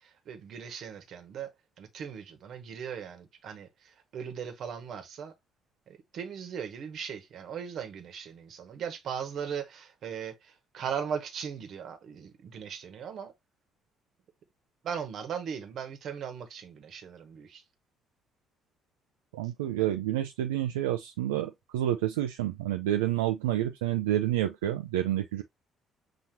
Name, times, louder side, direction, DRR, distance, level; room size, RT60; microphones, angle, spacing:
voice 1, 0.3-1.5 1.8-3.7 4.1-5.3 5.9-10.3 10.7-13.3 14.8-17.6 19.8-19.9, right 7 dB, 60° right, 1.1 m, -38 dB
voice 2, 19.3-25.4, right 13 dB, 85° right, 0.3 m, -29 dB
5.9 x 2.8 x 2.7 m
hypercardioid pair, 50°, 0 cm